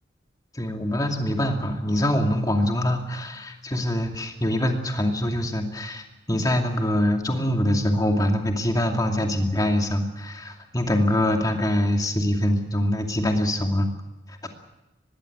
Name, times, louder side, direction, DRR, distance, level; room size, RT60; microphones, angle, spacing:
voice 1, 0.5-13.9 14.3-14.4, left 1 dB, 20° left, 3 dB, 2.5 m, -24 dB
20.5 x 16.0 x 9.7 m, 1.0 s
head